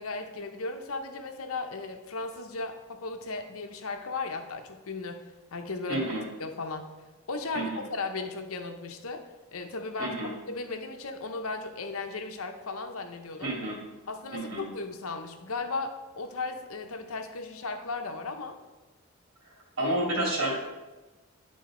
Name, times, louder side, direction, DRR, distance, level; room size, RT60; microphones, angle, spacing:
voice 1, 0.0-6.0 6.4-6.9 7.3-13.5 14.1-18.6, left 3 dB, 75° left, 6 dB, 0.8 m, -36 dB
voice 2, 5.9-6.2 7.5-7.8 10.0-10.3 13.4-13.8 14.3-14.6 19.8-20.7, right 1 dB, 70° right, -3 dB, 2.5 m, -30 dB
11.5 x 3.9 x 3.8 m, 1.2 s
head